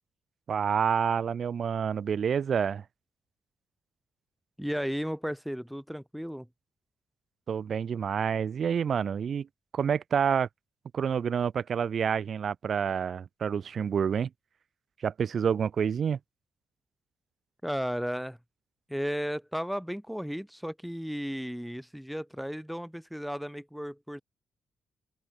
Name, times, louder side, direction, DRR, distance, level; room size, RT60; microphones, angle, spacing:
voice 1, 0.5-2.8 7.5-9.5 9.7-10.5 10.9-14.3 15.0-16.2, right 7 dB, 45° right, 0.5 m, -28 dB
voice 2, 4.6-6.5 17.6-18.4 18.9-24.2, equal, ahead, 2.8 m, -34 dB
open air
cardioid pair, 160°, 0 cm